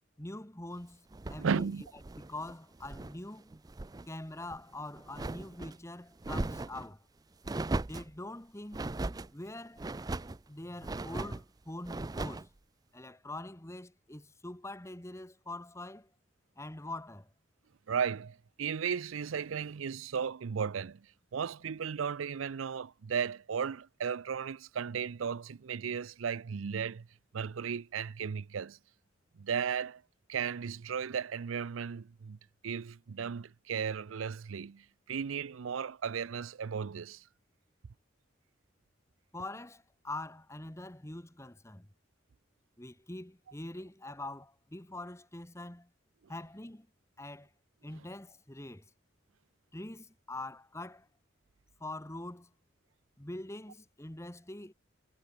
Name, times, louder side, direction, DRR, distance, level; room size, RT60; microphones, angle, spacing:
voice 1, 0.2-1.7 2.2-3.6 4.1-7.0 7.8-8.9 9.3-9.9 10.5-12.5 12.9-16.1 16.6-17.3 39.3-41.8 42.8-45.9 46.3-46.9 47.2-47.5 47.8-48.8 49.7-51.1 51.8-52.5 53.2-54.7, left 2 dB, 15° left, 1.4 m, -44 dB
sound 1, 1.1-3.2 3.5-4.1 4.4-5.8 6.2-6.9 7.4-8.1 8.7-9.3 9.8-10.4 10.8-11.4 11.8-12.5, right 2 dB, 20° right, 0.4 m, -38 dB
voice 2, 1.4-1.8 17.9-21.1 21.3-27.1 27.3-28.8 29.4-30.0 30.3-32.4 32.6-37.2, right 6 dB, 90° right, 0.5 m, -35 dB
head